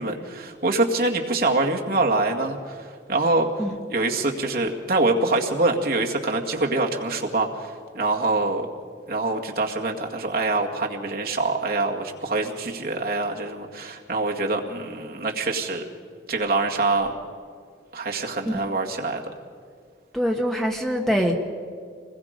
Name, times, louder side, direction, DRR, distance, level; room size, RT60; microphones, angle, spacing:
voice 1, 0.0-3.5 3.9-8.7 9.1-15.8 16.3-17.1 17.9-19.3, right 2 dB, 50° right, 0 dB, 2.0 m, -25 dB
voice 2, 20.1-21.4, equal, ahead, 1 dB, 1.4 m, -24 dB
26.0 x 21.0 x 5.2 m, 2.2 s
head